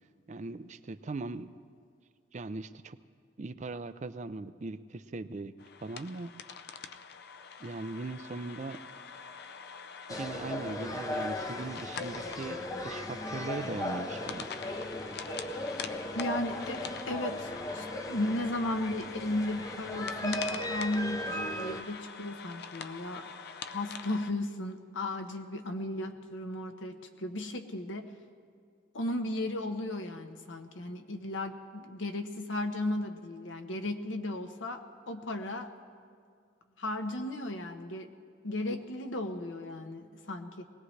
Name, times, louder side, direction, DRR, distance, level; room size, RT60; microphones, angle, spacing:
voice 1, 0.3-1.6 2.3-3.0 3.4-5.5 5.8-6.3 7.6-8.8 10.1-14.5, right 3 dB, 40° right, 12 dB, 0.4 m, -39 dB
sound 1, 5.6-24.3, left 6 dB, 55° left, 0.5 m, -44 dB
sound 2, 10.1-21.8, left 1 dB, 20° left, 0.6 m, -37 dB
voice 2, 16.1-23.2 23.7-28.1 28.9-35.7 36.8-38.2 38.4-40.6, left 1 dB, 80° left, 6 dB, 1.0 m, -35 dB
21.5 x 18.0 x 3.3 m, 2.1 s
head